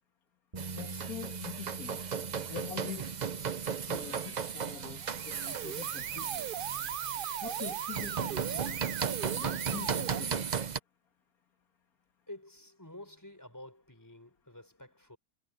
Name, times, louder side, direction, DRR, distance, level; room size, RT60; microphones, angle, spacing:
sound 1, 0.5-6.8, right 3 dB, 25° right, 1.4 m, -48 dB
sound 2, 0.6-10.8, right 6 dB, 45° right, 0.6 m, -36 dB
voice 1, 0.8-2.1 2.5-3.2 3.9-6.5 7.4-8.9 9.3-10.5, left 8 dB, 85° left, 2.3 m, -44 dB
sound 3, 5.0-10.2, right 11 dB, 85° right, 0.4 m, -38 dB
voice 2, 12.3-15.2, left 1 dB, 10° left, 5.3 m, -49 dB
omnidirectional pair, 1.5 m